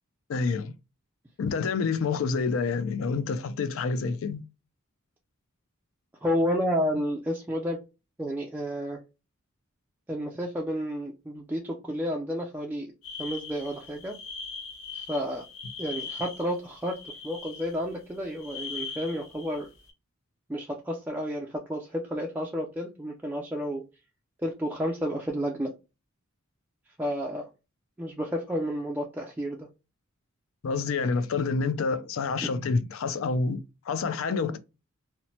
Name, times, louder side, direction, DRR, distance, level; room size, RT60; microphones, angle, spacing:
voice 1, 0.3-0.7 1.4-4.4 30.6-34.6, left 4 dB, 70° left, 0.4 m, -28 dB
voice 2, 6.2-7.8 8.2-9.0 10.1-12.9 13.2-14.2 14.9-15.5 15.8-19.7 20.5-23.8 24.4-25.7 27.0-27.5 28.0-29.7 32.4-32.5, equal, 10° right, 0.3 m, -31 dB
sound 1, 13.0-18.0 18.3-19.9, left 4 dB, 90° left, 0.9 m, -40 dB
2.9 x 2.1 x 2.7 m
head